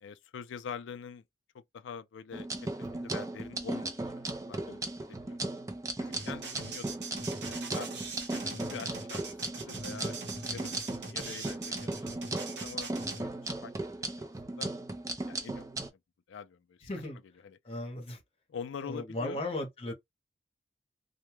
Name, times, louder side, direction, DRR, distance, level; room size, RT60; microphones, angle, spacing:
voice 1, 0.0-1.2 1.5-5.4 6.0-7.9 8.3-10.2 10.5-12.1 12.6-12.9 13.2-13.4 13.6-13.7 14.0-14.3 14.6-14.7 15.3-16.0 16.3-16.9 17.4-17.6 18.5-19.4, left 6 dB, 75° left, 0.3 m, -45 dB
sound 1, 2.3-15.9, right 2 dB, 15° right, 0.4 m, -37 dB
sound 2, 6.1-13.2, right 3 dB, 65° right, 0.8 m, -41 dB
voice 2, 16.8-17.2 17.6-18.2 18.8-19.9, left 1 dB, 30° left, 0.8 m, -36 dB
2.2 x 2.0 x 3.0 m
head